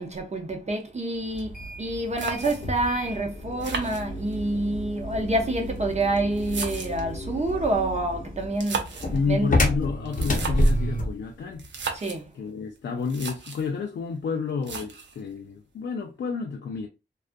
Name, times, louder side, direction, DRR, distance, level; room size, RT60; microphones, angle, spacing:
voice 1, 0.0-8.9 9.3-9.5 11.9-12.3, right 2 dB, 40° right, 0.6 m, -27 dB
sound 1, 1.3-11.2, equal, 45° left, 0.7 m, -29 dB
sound 2, 1.8-1.9 2.2-2.8 3.6-4.6 5.5-7.2 8.4-9.2 10.0-10.8 11.6-12.2 12.8-12.9 13.0-13.7 14.6-15.2, right 5 dB, 80° right, 0.6 m, -35 dB
voice 2, 9.1-11.7 12.3-16.9, left 5 dB, 80° left, 0.4 m, -30 dB
2.4 x 2.3 x 2.5 m
wide cardioid pair, 105°, 19 cm